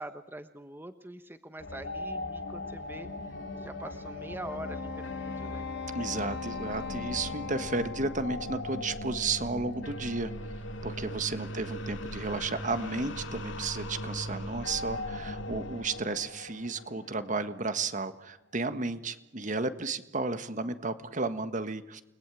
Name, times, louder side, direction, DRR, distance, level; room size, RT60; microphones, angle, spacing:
voice 1, 0.0-3.1 3.6-5.7 11.1-11.6, right 1 dB, 10° right, 9 dB, 1.1 m, -44 dB
sound 1, 1.6-17.8, left 1 dB, 80° left, 2.3 m, -39 dB
Wind instrument woodwind instrument, 4.4-9.0, left 6 dB, 60° left, 1.8 m, -40 dB
voice 2, 5.9-10.3 10.8-22.0, right 3 dB, 40° right, 11 dB, 1.5 m, -33 dB
29.5 x 21.0 x 9.1 m, 0.93 s
head